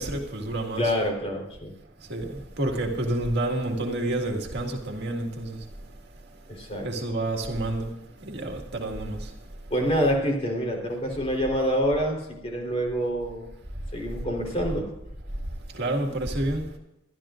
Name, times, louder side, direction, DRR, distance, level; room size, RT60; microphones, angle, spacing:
voice 1, 0.0-0.9 2.1-5.6 6.8-7.9 8.2-9.3 15.7-16.6, right 1 dB, 55° right, 2.0 m, -29 dB
voice 2, 0.8-1.7 6.5-6.9 9.7-13.5 13.9-14.9, equal, 30° left, 3.8 m, -26 dB
23.0 x 12.5 x 2.5 m
head